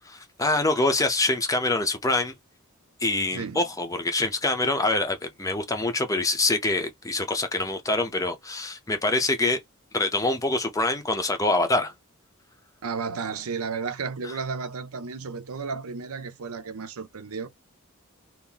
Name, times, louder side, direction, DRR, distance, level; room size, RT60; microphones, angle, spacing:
voice 1, 0.0-2.3 3.0-9.6 9.9-11.9 14.2-14.3, left 2 dB, 15° left, 0.6 m, -25 dB
voice 2, 12.8-17.5, right 5 dB, 75° right, 0.7 m, -33 dB
2.8 x 2.6 x 3.9 m
head